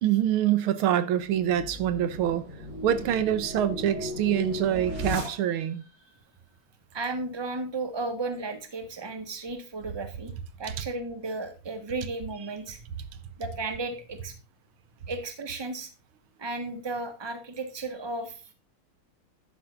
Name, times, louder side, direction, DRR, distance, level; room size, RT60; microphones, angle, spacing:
voice 1, 0.0-2.4 2.8-5.8, right 10 dB, 90° right, 1.8 m, -25 dB
sound 1, 1.3-5.9, left 1 dB, 35° right, 3.6 m, -36 dB
voice 2, 6.9-10.3 10.6-12.9 13.4-14.4 15.1-15.9 16.4-18.5, right 3 dB, 15° right, 1.2 m, -34 dB
11.5 x 9.7 x 2.5 m
omnidirectional pair, 2.3 m